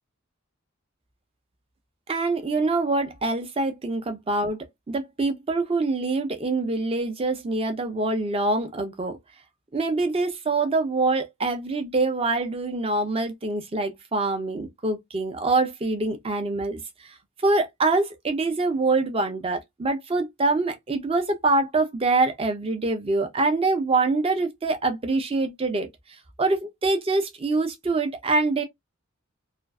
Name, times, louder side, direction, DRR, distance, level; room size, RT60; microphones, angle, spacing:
voice 1, 2.1-9.2 9.7-17.2 17.4-25.9 26.4-28.6, right 3 dB, 30° right, 0.5 m, -25 dB
2.4 x 2.3 x 2.2 m
head